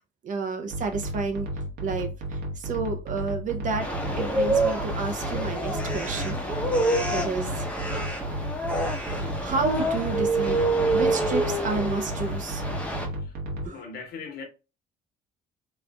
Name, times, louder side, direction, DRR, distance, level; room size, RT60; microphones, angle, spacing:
voice 1, 0.2-1.5 1.8-6.4 7.1-7.6 9.0-10.6 10.9-12.6 13.6-13.8, right 4 dB, 50° right, 0.9 m, -31 dB
sound 1, 0.7-13.7, right 1 dB, 75° right, 1.1 m, -33 dB
sound 2, 3.8-13.1, right 1 dB, 5° left, 0.9 m, -27 dB
voice 2, 13.6-14.4, left 5 dB, 65° left, 1.2 m, -39 dB
3.2 x 2.6 x 3.5 m
cardioid pair, 110°, 17 cm